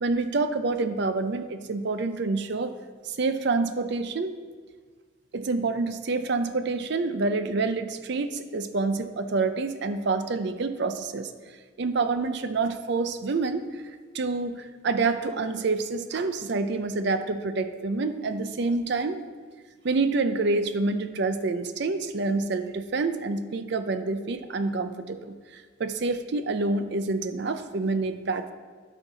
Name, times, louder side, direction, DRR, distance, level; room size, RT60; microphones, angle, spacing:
voice 1, 0.0-2.7 3.2-4.3 5.3-11.3 11.8-13.6 14.1-19.2 19.8-25.3 25.8-28.5, right 3 dB, 55° right, 9 dB, 0.5 m, -27 dB
12.5 x 4.6 x 3.9 m, 1.5 s
head